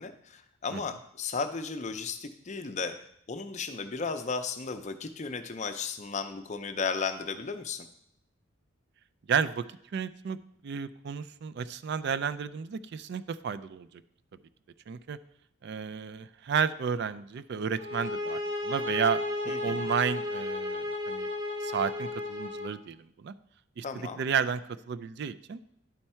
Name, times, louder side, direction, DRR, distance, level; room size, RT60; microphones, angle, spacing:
voice 1, 0.0-3.0 3.3-7.9 19.5-19.9 23.8-24.2, left 5 dB, 35° left, 8 dB, 0.5 m, -35 dB
voice 2, 9.3-9.6 9.9-10.4 10.6-14.0 14.9-15.2 15.6-19.2 19.6-21.3 21.6-23.3 23.8-25.6, right 6 dB, 50° right, 14 dB, 0.3 m, -32 dB
sound 1, 17.8-22.7, left 2 dB, 65° right, 1.3 m, -33 dB
10.5 x 4.5 x 4.3 m, 0.73 s
head